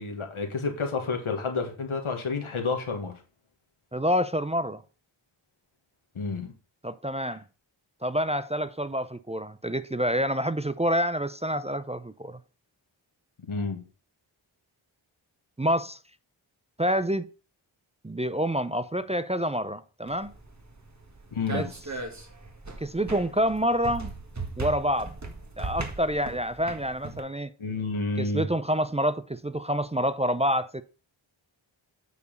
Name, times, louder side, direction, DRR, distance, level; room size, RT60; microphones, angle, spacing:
voice 1, 0.0-3.1 6.1-6.5 13.4-13.8 21.3-21.7 27.6-28.5, left 4 dB, 85° left, 1.7 m, -30 dB
voice 2, 3.9-4.8 6.8-7.4 8.0-12.4 15.6-16.0 16.8-17.3 18.0-20.3 21.5-21.7 22.8-24.1 24.6-25.1 25.6-27.5 28.2-30.8, equal, 15° right, 0.5 m, -27 dB
sound 1, 20.1-27.2, right 3 dB, 35° right, 1.8 m, -38 dB
8.3 x 4.7 x 5.2 m
cardioid pair, 40°, 48 cm